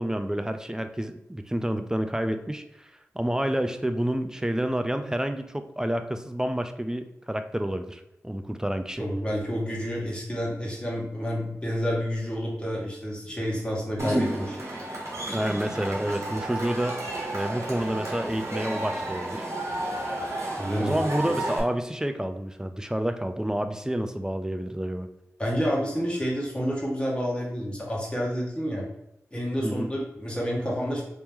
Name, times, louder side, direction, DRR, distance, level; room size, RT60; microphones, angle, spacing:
voice 1, 0.0-9.0 15.3-17.0 17.3-19.5 20.8-25.1 29.6-29.9, right 1 dB, 10° right, 7 dB, 0.4 m, -29 dB
voice 2, 9.0-14.6 20.6-21.0 25.4-28.8 29.3-31.0, equal, 20° left, -4 dB, 1.4 m, -29 dB
Cheering / Crowd, 14.0-21.6, right 1 dB, 60° right, 1.3 m, -32 dB
3.0 x 3.0 x 3.5 m, 0.85 s
cardioid pair, 40°, 6 cm